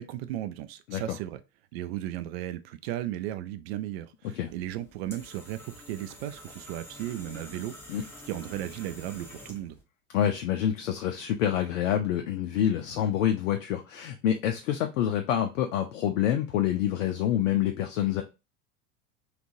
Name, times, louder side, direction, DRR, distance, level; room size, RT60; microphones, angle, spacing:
voice 1, 0.0-1.4 1.7-9.8, right 13 dB, 45° right, 0.4 m, -36 dB
sound 1, 4.4-9.8, left 1 dB, 5° left, 0.8 m, -47 dB
voice 2, 10.1-18.2, left 10 dB, 55° left, 0.5 m, -27 dB
3.6 x 2.4 x 2.5 m
figure-of-eight pair, 80°, 46 cm